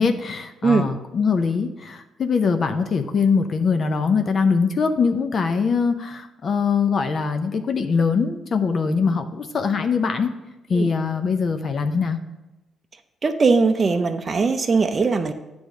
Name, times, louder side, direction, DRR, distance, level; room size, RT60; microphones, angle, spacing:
voice 1, 0.0-10.3 10.7-12.2, left 5 dB, 50° left, 7 dB, 0.6 m, -22 dB
voice 2, 13.2-15.3, right 4 dB, 35° right, 6 dB, 0.5 m, -20 dB
8.0 x 3.5 x 6.3 m, 1.0 s
cardioid pair, 90°, 0 cm